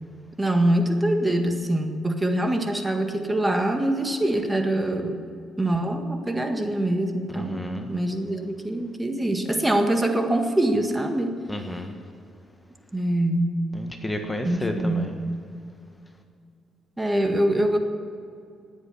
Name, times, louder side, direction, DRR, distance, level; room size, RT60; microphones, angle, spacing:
voice 1, 0.4-5.2 5.6-7.6 7.9-11.3 12.9-13.5 14.4-15.1 17.0-17.8, right 1 dB, 15° right, 5 dB, 1.7 m, -24 dB
voice 2, 7.3-7.9 11.5-11.9 13.7-15.1, left 1 dB, 15° left, 4 dB, 1.4 m, -31 dB
18.5 x 8.2 x 7.1 m, 2.4 s
cardioid pair, 90°, 0 cm